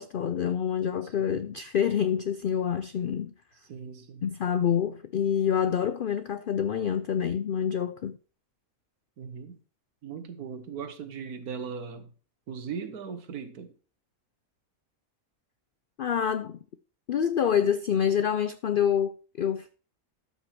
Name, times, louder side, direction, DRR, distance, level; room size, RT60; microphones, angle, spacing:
voice 1, 0.0-3.3 4.2-8.2 16.0-16.6 17.1-19.8, left 8 dB, 75° left, 0.4 m, -27 dB
voice 2, 3.7-4.2 9.2-9.6 10.0-12.1 12.5-13.7, right 6 dB, 90° right, 1.7 m, -38 dB
12.5 x 5.6 x 4.5 m
omnidirectional pair, 1.5 m